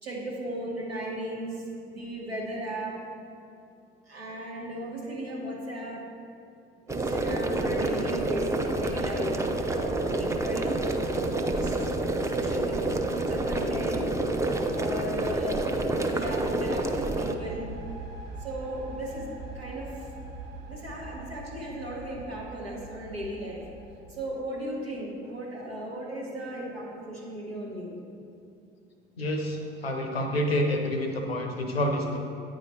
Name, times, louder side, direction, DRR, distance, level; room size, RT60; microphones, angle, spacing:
voice 1, 0.0-3.0 4.1-6.0 6.9-10.8 11.2-11.7 12.2-14.1 14.7-15.7 16.0-17.7 18.4-20.0 20.7-23.6 24.1-27.9, right 1 dB, 90° right, -5 dB, 1.2 m, -36 dB
sound 1, 6.9-17.3, right 2 dB, 10° right, 0.5 m, -28 dB
sound 2, 16.6-24.4, right 2 dB, 70° right, 1.3 m, -43 dB
voice 2, 29.2-32.2, left 1 dB, 85° left, 3 dB, 0.7 m, -28 dB
9.0 x 4.9 x 4.2 m, 2.5 s
figure-of-eight pair, 50°, 30 cm